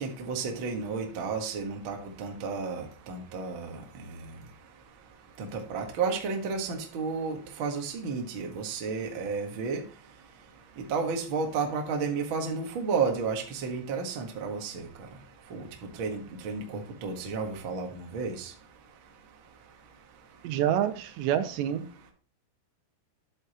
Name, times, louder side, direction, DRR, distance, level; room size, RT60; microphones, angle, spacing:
voice 1, 0.0-3.8 5.4-9.8 10.9-14.9 15.5-15.7 16.0-18.5, right 5 dB, 65° right, 2 dB, 1.2 m, -32 dB
voice 2, 20.4-21.8, right 10 dB, 90° right, 10 dB, 3.0 m, -27 dB
10.5 x 8.0 x 3.0 m, 0.38 s
omnidirectional pair, 5.1 m